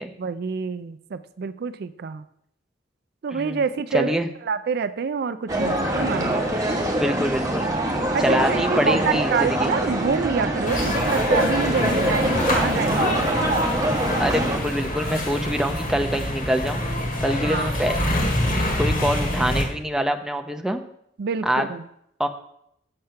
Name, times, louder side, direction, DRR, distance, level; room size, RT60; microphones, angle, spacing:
voice 1, 0.2-2.3 3.2-4.2 4.4-6.4 8.1-13.5 17.4-17.8 21.2-21.9, right 5 dB, 60° right, 12 dB, 0.4 m, -27 dB
voice 2, 3.9-4.3 6.9-7.7 8.2-9.7 14.2-16.8 17.2-18.0 18.8-20.8 21.5-21.7 22.2-22.3, equal, 5° right, 5 dB, 0.6 m, -25 dB
sound 1, 5.5-14.6, right 1 dB, 20° right, 1.4 m, -24 dB
sound 2, 10.6-19.6, left 1 dB, 50° left, 2.3 m, -25 dB
7.7 x 7.2 x 5.6 m, 0.73 s
head